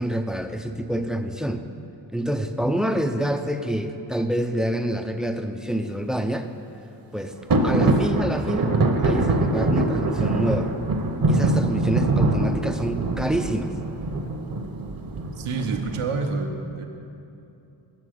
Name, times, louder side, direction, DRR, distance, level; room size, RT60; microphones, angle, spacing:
voice 1, 0.0-1.6 2.1-6.5 7.1-7.3 7.6-10.7 11.3-13.7, right 1 dB, ahead, 7 dB, 0.4 m, -27 dB
sound 1, 7.5-16.1, right 2 dB, 45° right, 0.9 m, -23 dB
voice 2, 15.3-16.9, right 4 dB, 85° right, 4 dB, 1.0 m, -28 dB
9.1 x 6.7 x 6.4 m, 2.8 s
cardioid pair, 80°, 50 cm